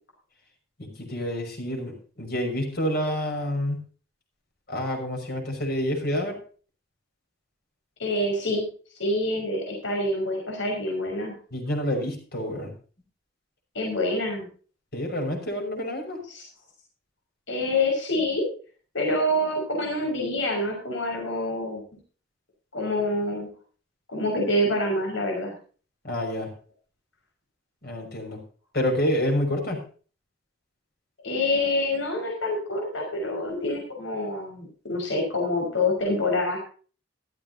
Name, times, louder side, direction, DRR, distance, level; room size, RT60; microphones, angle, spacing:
voice 1, 0.8-3.8 4.7-6.4 11.5-12.7 14.9-16.2 26.0-26.5 27.8-28.4 28.7-29.8, left 1 dB, 55° left, 2 dB, 5.9 m, -28 dB
voice 2, 8.0-8.7 9.0-11.3 13.7-14.5 16.3-16.5 17.5-18.5 18.9-21.8 22.7-23.5 24.1-25.5 31.2-36.6, left 1 dB, 85° left, 1 dB, 5.6 m, -26 dB
15.5 x 14.0 x 2.8 m, 0.39 s
head